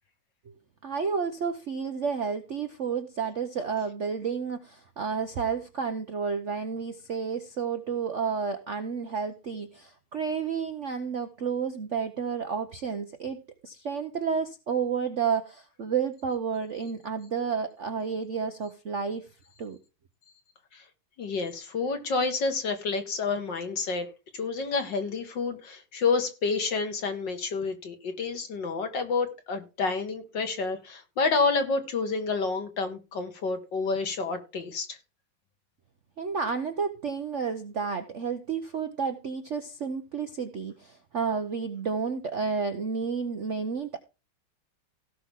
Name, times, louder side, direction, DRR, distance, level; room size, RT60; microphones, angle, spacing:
voice 1, 0.8-19.3 19.6-19.8 36.2-44.0, right 6 dB, 55° right, 0.8 m, -31 dB
voice 2, 21.2-24.1 24.3-35.0, left 4 dB, 55° left, 2.3 m, -29 dB
17.0 x 5.8 x 3.6 m
omnidirectional pair, 2.3 m